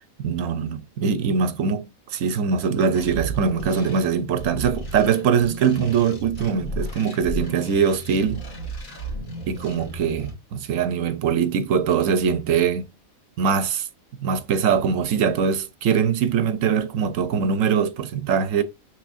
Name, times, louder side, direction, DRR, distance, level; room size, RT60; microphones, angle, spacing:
voice 1, 0.2-8.4 9.5-12.9 13.4-13.9 14.2-18.6, right 6 dB, 75° right, 1.1 m, -22 dB
sound 1, 3.0-10.3, right 1 dB, 75° left, 2.1 m, -34 dB
6.3 x 3.3 x 2.4 m
omnidirectional pair, 1.4 m